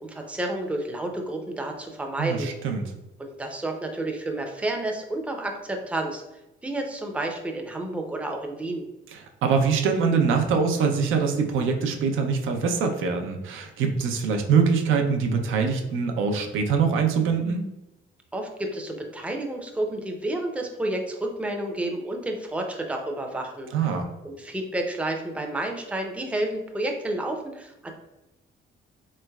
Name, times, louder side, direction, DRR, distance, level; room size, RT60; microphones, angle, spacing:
voice 1, 0.0-2.5 3.2-6.2 6.6-8.8 18.3-23.7 24.2-27.9, right 1 dB, 5° right, 2 dB, 0.5 m, -30 dB
voice 2, 2.2-2.8 9.1-17.6 23.7-24.1, right 5 dB, 80° right, 4 dB, 0.5 m, -23 dB
3.2 x 3.0 x 2.2 m, 0.95 s
cardioid pair, 90°, 20 cm